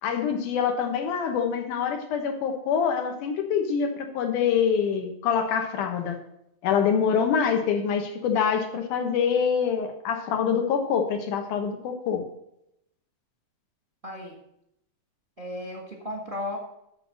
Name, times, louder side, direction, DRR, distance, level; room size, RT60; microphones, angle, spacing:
voice 1, 0.0-6.2 6.6-12.2, left 7 dB, 85° left, 5 dB, 2.7 m, -25 dB
voice 2, 14.0-14.4 15.4-16.6, left 1 dB, 35° right, 0 dB, 0.8 m, -35 dB
8.4 x 6.6 x 6.4 m, 0.80 s
omnidirectional pair, 3.5 m